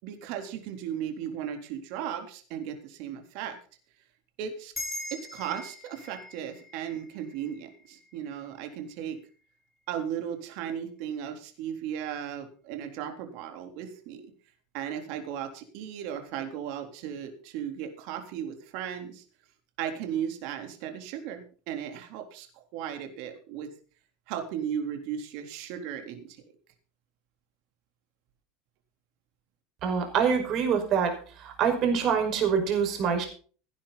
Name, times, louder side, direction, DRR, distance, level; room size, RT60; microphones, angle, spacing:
voice 1, 0.0-3.6 4.4-4.7 5.1-9.2 9.9-14.2 14.7-19.2 19.8-22.5 22.7-23.7 24.3-26.4, right 9 dB, 60° right, 5 dB, 3.7 m, -36 dB
sound 1, 4.7-9.5, left 1 dB, 10° left, 7.1 m, -43 dB
voice 2, 29.8-33.3, right 6 dB, 40° right, 4 dB, 5.4 m, -25 dB
17.5 x 10.0 x 4.2 m, 0.40 s
supercardioid pair, 140°, 0 cm